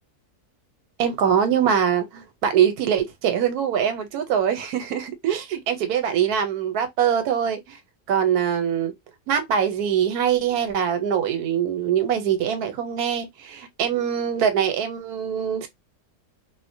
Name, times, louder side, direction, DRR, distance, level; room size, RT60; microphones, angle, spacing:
voice 1, 1.0-7.8 8.1-8.9 9.3-15.7, right 8 dB, 80° right, 1.2 m, -23 dB
2.5 x 2.1 x 2.5 m
omnidirectional pair, 1.6 m